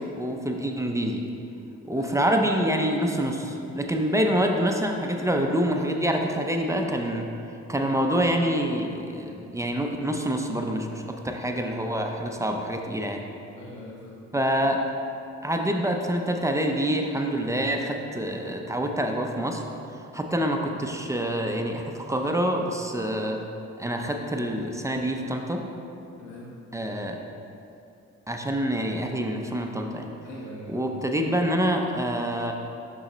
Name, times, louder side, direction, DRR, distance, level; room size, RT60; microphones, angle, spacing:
voice 1, 0.2-1.2 1.9-7.3 7.7-13.2 14.3-14.8 15.4-19.6 20.1-23.4 23.8-25.6 26.7-27.2 28.3-30.1 30.7-32.5, equal, 10° right, 2 dB, 0.5 m, -26 dB
voice 2, 13.5-14.2 26.2-26.5 30.2-31.0, left 1 dB, 75° left, -4 dB, 0.9 m, -42 dB
6.4 x 5.5 x 3.0 m, 2.8 s
cardioid pair, 90°, 30 cm